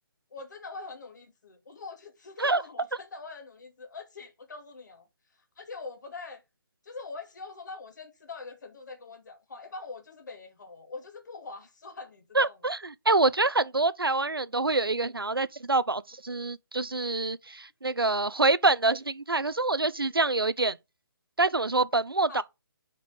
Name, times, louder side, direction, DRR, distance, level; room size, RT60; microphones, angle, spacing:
voice 1, 0.3-5.1 5.6-6.4 6.8-12.6 22.3-22.4, left 4 dB, 55° left, 2.5 m, -43 dB
voice 2, 12.3-20.7 21.4-22.4, right 3 dB, 85° right, 0.6 m, -26 dB
6.8 x 5.2 x 6.6 m
figure-of-eight pair, 140°, 12 cm